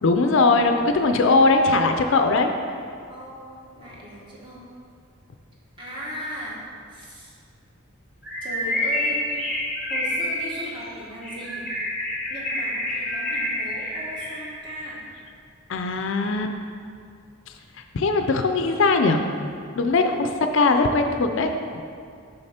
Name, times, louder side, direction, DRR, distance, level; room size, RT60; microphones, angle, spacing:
voice 1, 0.0-2.5 15.7-16.5 17.9-19.2 19.7-21.8, left 3 dB, 60° left, 6 dB, 0.4 m, -20 dB
voice 2, 3.1-4.7 5.8-6.6 6.9-7.3 8.4-9.2 9.9-11.7 12.3-15.0 20.0-20.2, equal, 25° right, -5 dB, 1.4 m, -38 dB
Bird, 8.2-14.5, left 1 dB, ahead, 1.6 m, -28 dB
6.6 x 5.8 x 4.3 m, 2.3 s
head